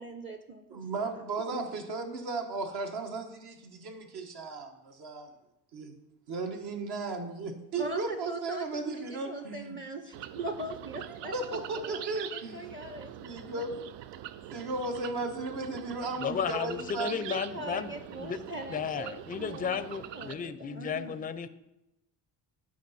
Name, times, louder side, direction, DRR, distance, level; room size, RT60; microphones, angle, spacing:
voice 1, 0.0-0.8 7.8-13.2 17.1-21.2, right 2 dB, 30° right, 7 dB, 0.7 m, -41 dB
voice 2, 0.7-5.3 5.7-5.9 6.3-9.8 11.2-12.7 13.1-13.8 14.5-17.2, right 3 dB, 65° right, 3 dB, 1.3 m, -35 dB
sound 1, 10.1-20.3, right 11 dB, 90° right, 0.5 m, -44 dB
voice 3, 16.2-18.4 18.7-21.5, left 7 dB, 20° left, 13 dB, 0.4 m, -34 dB
11.5 x 4.9 x 4.2 m, 0.90 s
cardioid pair, 110°, 42 cm